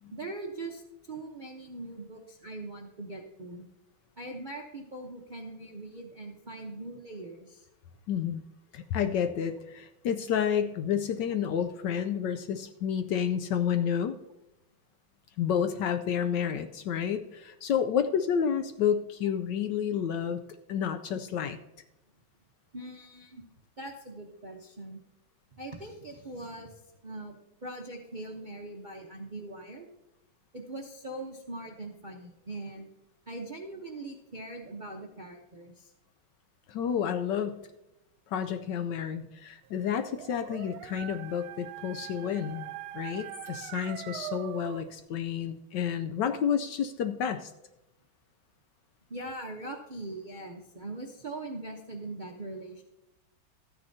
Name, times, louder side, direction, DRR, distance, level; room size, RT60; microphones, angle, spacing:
voice 1, 0.1-3.6 4.2-7.7 22.7-23.5 23.8-25.0 25.5-29.9 30.5-32.9 33.3-35.9 37.3-37.4 49.1-52.8, right 2 dB, 45° right, 1 dB, 0.6 m, -41 dB
voice 2, 8.1-8.4 8.7-14.2 15.4-20.4 20.7-21.6 36.7-37.6 38.3-42.7 42.9-47.5, left 8 dB, 75° left, 9 dB, 1.1 m, -30 dB
Dog, 39.8-44.9, right 14 dB, 85° right, 1.4 m, -42 dB
13.5 x 9.8 x 2.7 m, 0.94 s
omnidirectional pair, 2.3 m